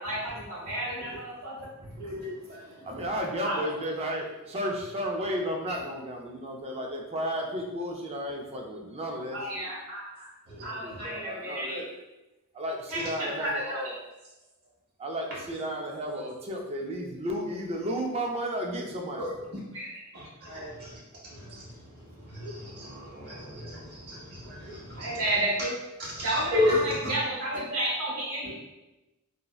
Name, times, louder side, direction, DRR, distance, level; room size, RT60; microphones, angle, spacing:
voice 1, 0.0-1.5 3.4-3.6 9.3-10.3 10.6-11.8 12.9-13.8 19.7-19.9 20.4-20.7 24.9-25.7 26.1-28.5, right 1 dB, 70° right, -6 dB, 1.1 m, -32 dB
voice 2, 1.9-2.7 10.5-11.1 19.2-19.3 20.1-20.3 20.5-20.9 21.2-21.6 22.3-25.2 26.1-27.1, left 2 dB, 45° right, -7 dB, 1.0 m, -32 dB
voice 3, 2.8-9.7 10.6-11.9 12.5-13.9 15.0-19.3, equal, 30° right, 1 dB, 0.3 m, -33 dB
2.6 x 2.0 x 2.3 m, 1.0 s
head